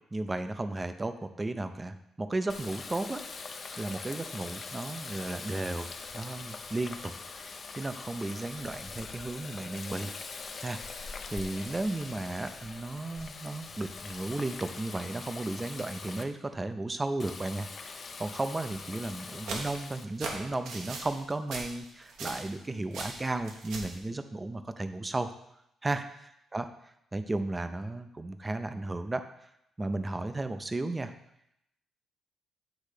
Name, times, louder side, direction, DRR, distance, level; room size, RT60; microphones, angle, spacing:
voice 1, 0.1-3.2 3.5-5.9 6.1-10.1 10.6-25.3 25.8-26.1 26.5-26.6 27.1-29.3 29.8-31.1, right 2 dB, 20° right, 10 dB, 0.5 m, -34 dB
Water tap faucet, 2.5-16.2 17.2-20.1, left 4 dB, 45° left, 0.6 m, -43 dB
sound 1, 19.0-22.6 22.9-24.0, right 3 dB, 75° right, 1.2 m, -39 dB
8.3 x 3.2 x 5.0 m, 0.79 s
cardioid pair, 90°, 0 cm